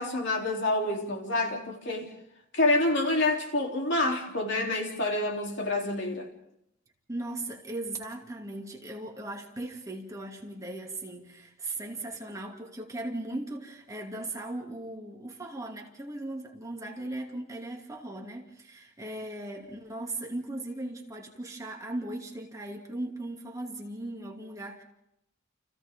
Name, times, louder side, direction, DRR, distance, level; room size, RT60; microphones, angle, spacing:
voice 1, 0.0-2.1 2.5-6.3, left 2 dB, 60° left, 3.5 m, -27 dB
voice 2, 7.1-24.8, right 2 dB, 15° right, 2.6 m, -38 dB
30.0 x 29.0 x 3.8 m
head